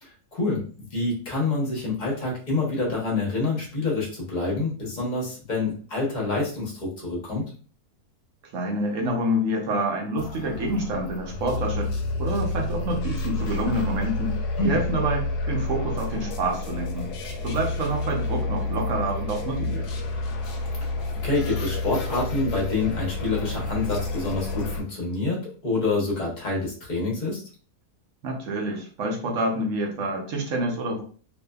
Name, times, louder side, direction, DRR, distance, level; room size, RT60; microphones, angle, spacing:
voice 1, 0.0-7.4 14.6-14.8 20.7-20.9 21.2-27.4, left 3 dB, 35° left, -3 dB, 0.9 m, -27 dB
voice 2, 8.5-11.9 12.2-14.3 14.6-17.1 17.4-19.9 28.2-31.0, right 1 dB, 60° right, 1 dB, 1.0 m, -27 dB
sound 1, 10.2-24.8, left 2 dB, 80° left, 1.1 m, -29 dB
2.7 x 2.5 x 2.3 m, 0.41 s
omnidirectional pair, 1.7 m